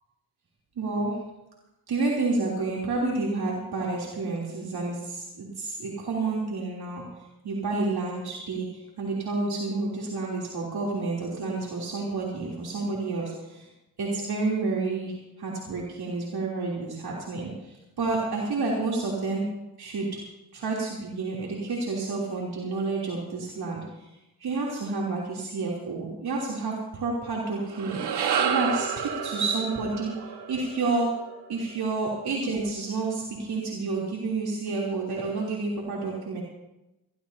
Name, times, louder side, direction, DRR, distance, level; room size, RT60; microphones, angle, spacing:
voice 1, 0.8-1.2 1.9-13.7 14.0-19.5 19.8-20.1 20.5-24.1 24.4-31.1 31.5-36.4, right 3 dB, 70° right, -4 dB, 3.3 m, -30 dB
sound 1, 27.6-32.0, right 7 dB, 85° right, 1.5 m, -30 dB
21.5 x 15.5 x 2.8 m, 0.96 s
cardioid pair, 80°, 39 cm